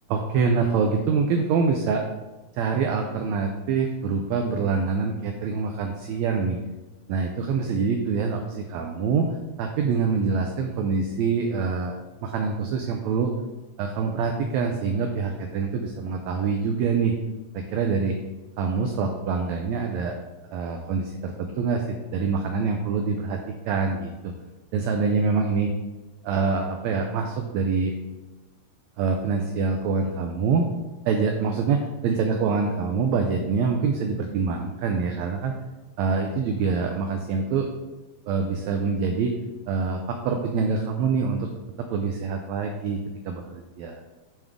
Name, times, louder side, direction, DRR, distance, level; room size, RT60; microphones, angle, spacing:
voice 1, 0.1-2.0 2.6-6.6 7.1-9.3 9.6-11.9 12.2-13.3 13.8-17.1 17.5-18.2 18.6-20.1 20.5-23.4 23.7-24.3 24.7-25.7 26.2-27.9 29.0-30.6 31.1-35.5 36.0-37.7 38.3-39.3 39.7-41.5 41.8-44.0, right 5 dB, 80° right, 4 dB, 1.7 m, -25 dB
10.5 x 3.6 x 3.5 m, 1.1 s
omnidirectional pair, 3.6 m